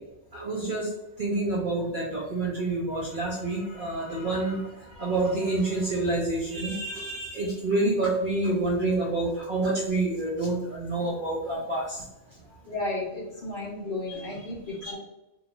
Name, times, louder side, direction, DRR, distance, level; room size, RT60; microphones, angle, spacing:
voice 1, 0.3-0.9 1.2-12.0 14.8-15.0, right 2 dB, 65° right, -4 dB, 0.5 m, -28 dB
voice 2, 12.7-15.0, left 2 dB, 60° left, -3 dB, 0.7 m, -33 dB
2.2 x 2.1 x 2.9 m, 0.94 s
omnidirectional pair, 1.3 m